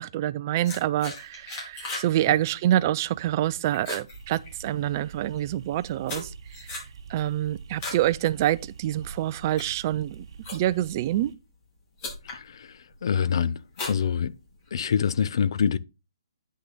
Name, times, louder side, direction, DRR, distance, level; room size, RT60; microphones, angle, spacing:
voice 1, 0.0-6.8 7.1-10.3 10.5-11.3, right 13 dB, 35° right, 0.4 m, -26 dB
sound 1, 0.6-2.1 2.4-2.8 3.2-3.5 3.7-4.9 5.5-8.1 8.5-8.8 9.3-10.9 11.6-11.7 12.0-12.4 12.9-13.3 13.7-14.7, left 3 dB, 30° left, 4.7 m, -38 dB
sound 2, 4.1-11.3, right 5 dB, 60° right, 2.8 m, -45 dB
voice 2, 12.2-13.6 13.9-14.3 14.7-15.8, left 7 dB, 60° left, 0.6 m, -25 dB
9.7 x 6.4 x 4.0 m
hypercardioid pair, 150°, 3 cm